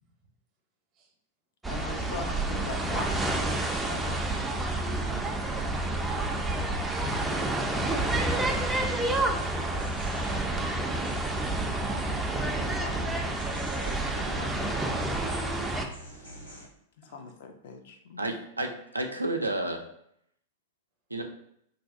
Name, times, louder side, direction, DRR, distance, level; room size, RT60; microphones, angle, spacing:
sound 1, 1.6-15.9, right 2 dB, 10° right, 0.3 m, -29 dB
voice 1, 1.7-3.4 3.9-4.6 12.3-15.1 17.0-18.3, left 5 dB, 60° left, 6 dB, 0.4 m, -42 dB
voice 2, 9.0-10.4 10.6-10.9 17.0-17.2, left 1 dB, 35° right, 2 dB, 0.7 m, -54 dB
sound 2, 9.3-16.7, equal, 75° left, 1.2 m, -47 dB
voice 3, 18.2-19.8 21.1-21.2, right 2 dB, 90° right, 3 dB, 0.3 m, -31 dB
2.6 x 2.2 x 2.4 m, 0.72 s
figure-of-eight pair, 95°, 0 cm